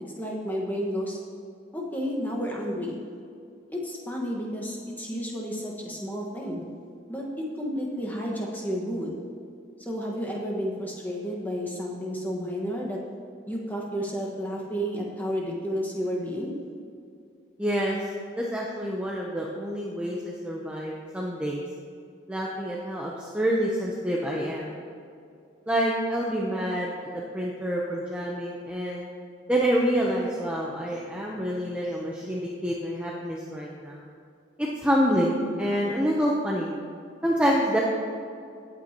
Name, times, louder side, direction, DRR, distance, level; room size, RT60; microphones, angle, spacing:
voice 1, 0.2-1.2 1.7-3.0 3.7-6.7 7.1-9.2 9.8-13.0 13.5-16.5, equal, 10° left, -2 dB, 1.5 m, -31 dB
voice 2, 17.6-18.0 18.3-21.6 22.3-24.7 25.7-29.1 29.5-34.0 34.6-36.7 37.2-37.8, equal, 5° right, -4 dB, 0.8 m, -27 dB
17.5 x 8.9 x 3.0 m, 2.5 s
head